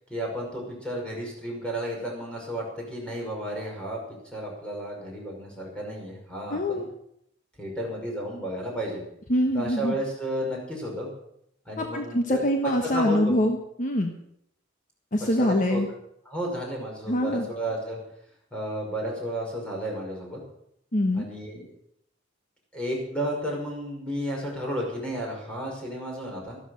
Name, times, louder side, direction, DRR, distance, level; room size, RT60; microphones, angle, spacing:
voice 1, 0.1-4.0 4.3-6.8 7.6-9.0 9.5-11.1 11.7-12.5 12.8-13.4 15.2-15.8 16.3-18.0 18.5-20.4 21.1-21.7 22.7-26.6, equal, 5° left, -2 dB, 5.4 m, -32 dB
voice 2, 6.5-6.9 9.3-9.9 11.8-14.1 15.1-15.9 17.1-17.5 20.9-21.3, left 1 dB, 40° left, 4 dB, 1.2 m, -24 dB
14.0 x 12.0 x 6.5 m, 0.74 s
head